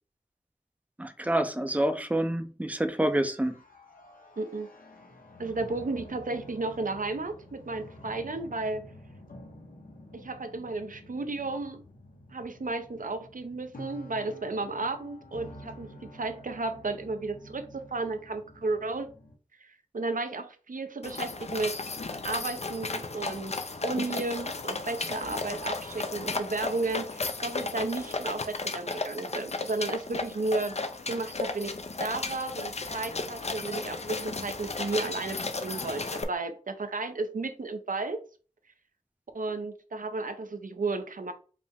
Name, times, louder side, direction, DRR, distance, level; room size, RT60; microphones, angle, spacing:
voice 1, 1.0-3.6, right 1 dB, 10° right, 8 dB, 0.5 m, -27 dB
sound 1, 2.9-19.4, equal, 80° left, 0.9 m, -50 dB
voice 2, 4.4-4.7 5.4-8.9 10.1-11.8 12.3-19.1 19.6-21.8 22.2-23.5 23.8-30.8 31.1-31.7 32.0-38.2 39.3-41.3, right 3 dB, 70° right, 8 dB, 0.6 m, -33 dB
sound 2, 21.0-36.2, left 3 dB, 50° left, 0.5 m, -34 dB
5.0 x 2.1 x 3.4 m, 0.38 s
wide cardioid pair, 55°, 14 cm